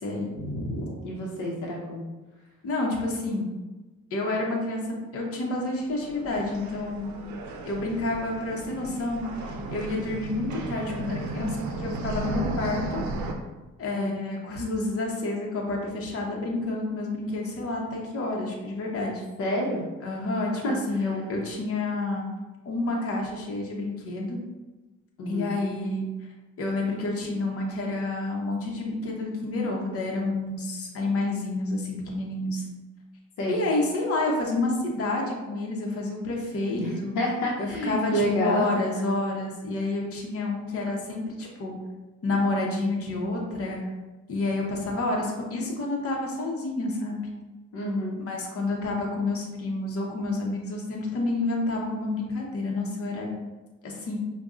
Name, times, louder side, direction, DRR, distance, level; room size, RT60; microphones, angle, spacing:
voice 1, 0.0-0.9 2.6-3.5 4.1-7.1 7.6-13.0 13.8-19.2 20.0-20.6 20.9-22.3 22.6-24.4 25.2-26.0 26.6-32.6 33.5-37.1 37.6-41.7 42.2-43.8 44.3-47.2 48.3-53.3 53.8-54.2, left 2 dB, 50° left, -1 dB, 0.9 m, -29 dB
voice 2, 1.0-2.0 13.9-14.1 19.4-19.8 20.6-21.1 25.2-25.6 33.4-33.6 36.7-38.7 47.7-48.2, equal, 80° left, -3 dB, 0.8 m, -28 dB
sound 1, 5.8-13.3, right 2 dB, 75° right, 0.6 m, -34 dB
5.2 x 2.3 x 2.4 m, 1.1 s
cardioid pair, 90°, 30 cm